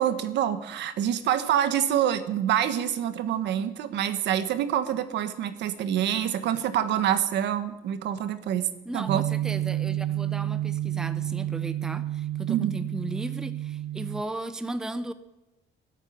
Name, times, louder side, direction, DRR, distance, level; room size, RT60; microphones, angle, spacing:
voice 1, 0.0-9.2 12.5-12.7, right 10 dB, 65° right, 11 dB, 1.3 m, -26 dB
voice 2, 8.9-15.1, right 1 dB, 5° right, 11 dB, 0.6 m, -36 dB
sound 1, 9.1-14.2, right 13 dB, 90° right, 0.5 m, -30 dB
14.5 x 9.1 x 9.5 m, 1.0 s
cardioid pair, 170°, 20 cm